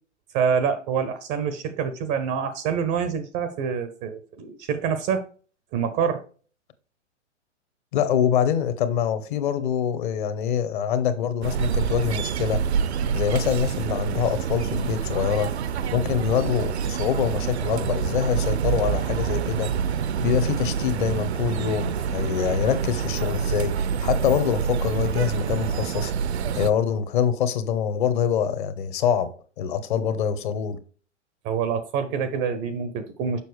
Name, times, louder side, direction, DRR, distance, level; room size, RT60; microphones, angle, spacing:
voice 1, 0.3-5.2 5.7-6.2 31.4-33.4, right 7 dB, 20° right, 0.5 m, -26 dB
voice 2, 7.9-12.6 13.1-19.7 20.2-26.1 26.5-29.3 29.6-30.8, left 8 dB, 45° left, 0.9 m, -25 dB
sound 1, 11.4-26.7, right 7 dB, 65° right, 0.6 m, -27 dB
6.9 x 5.9 x 3.2 m
figure-of-eight pair, 115°, 36 cm